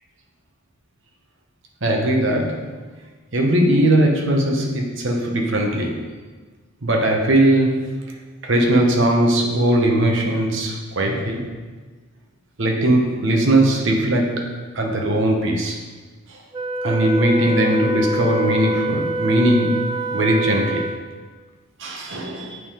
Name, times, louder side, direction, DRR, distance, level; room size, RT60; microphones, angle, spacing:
voice 1, 1.8-2.7 3.3-6.1 6.8-8.1 8.4-11.5 12.6-15.8 16.3-16.4 16.8-20.9 21.8-22.6, right 1 dB, 55° right, 1 dB, 0.9 m, -19 dB
Wind instrument woodwind instrument, 16.5-21.2, right 1 dB, 20° right, 0.4 m, -26 dB
8.1 x 3.7 x 4.9 m, 1.4 s
head